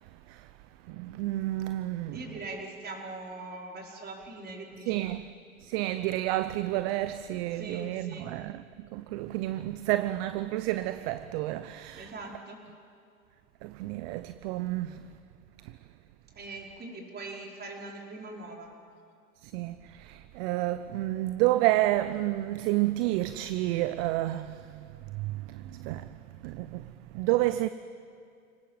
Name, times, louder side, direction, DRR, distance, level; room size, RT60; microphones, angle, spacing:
voice 1, 0.9-2.2 4.9-5.2 5.7-8.6 8.9-12.1 13.6-15.0 19.4-24.5 25.2-26.1 26.4-26.8 27.1-27.7, right 16 dB, 45° right, 0.8 m, -30 dB
voice 2, 2.1-5.2 7.5-8.3 11.9-12.6 16.3-18.7, right 2 dB, 20° right, 5.0 m, -42 dB
30.0 x 19.0 x 7.6 m
figure-of-eight pair, 95°, 43 cm